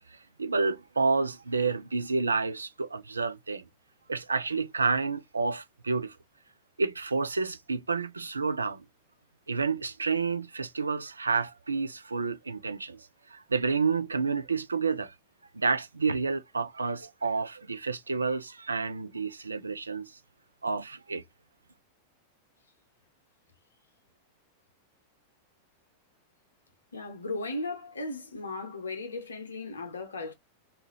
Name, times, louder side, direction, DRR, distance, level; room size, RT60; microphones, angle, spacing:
voice 1, 0.4-3.6 4.1-6.2 6.8-8.8 9.5-15.1 15.5-20.1 20.6-21.2, right 4 dB, 75° right, 0.3 m, -29 dB
voice 2, 26.9-30.3, left 2 dB, 75° left, 0.7 m, -36 dB
2.7 x 2.5 x 2.9 m
figure-of-eight pair, 90°, 0 cm